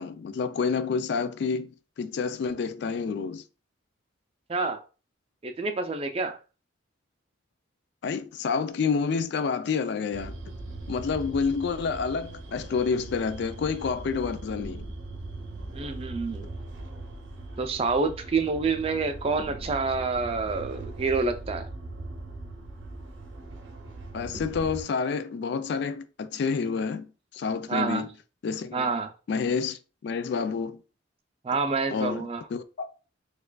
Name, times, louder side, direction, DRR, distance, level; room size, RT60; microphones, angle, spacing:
voice 1, 0.0-3.4 8.0-10.3 10.9-14.8 24.1-27.1 27.3-28.1 28.4-28.9 29.3-30.8 31.9-32.9, left 5 dB, 60° left, 0.3 m, -29 dB
voice 2, 5.4-6.4 15.7-16.5 17.6-21.7 27.7-28.1 28.7-29.1 31.4-32.4, right 4 dB, 30° right, 0.3 m, -28 dB
sound 1, 10.1-24.8, right 2 dB, 65° right, 0.7 m, -40 dB
4.5 x 2.4 x 2.2 m
head